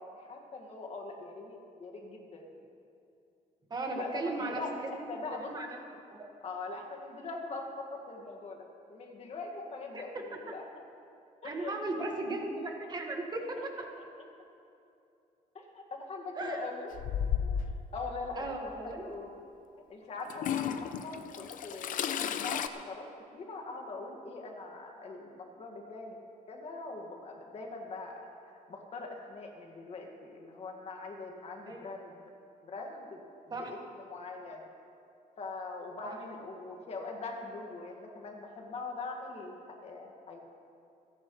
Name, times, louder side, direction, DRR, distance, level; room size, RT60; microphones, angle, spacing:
voice 1, 0.0-2.5 4.0-5.8 6.4-10.6 11.4-12.2 13.6-13.7 15.5-16.9 17.4-17.6 17.9-18.5 18.8-19.3 19.9-22.1 22.4-23.1 23.3-26.2 26.5-32.2 32.6-33.2 33.5-34.7 35.4-40.4, left 3 dB, 45° left, 1 dB, 1.9 m, -42 dB
voice 2, 3.7-4.6 4.9-5.1 5.4-5.7 6.1-6.3 9.9-10.0 11.4-13.9 16.4-16.7 18.4-19.1 31.7-31.9 33.5-33.7 36.0-36.2, right 2 dB, 30° right, 1 dB, 1.7 m, -36 dB
Toilet flush / Trickle dribble, 16.9-17.9 18.9-19.0 20.3-22.7, left 8 dB, 65° left, 0.6 m, -33 dB
28.0 x 11.0 x 3.2 m, 2.6 s
cardioid pair, 160°, 15 cm